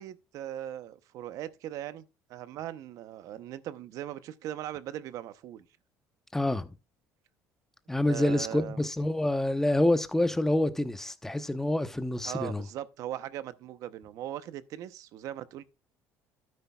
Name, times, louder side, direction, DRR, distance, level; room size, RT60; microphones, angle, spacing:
voice 1, 0.0-2.0 2.3-5.6 8.1-8.8 12.2-15.6, right 12 dB, 65° right, 0.8 m, -39 dB
voice 2, 6.3-6.7 7.9-12.6, left 1 dB, 5° left, 0.9 m, -27 dB
12.5 x 9.6 x 2.4 m
cardioid pair, 120°, 6 cm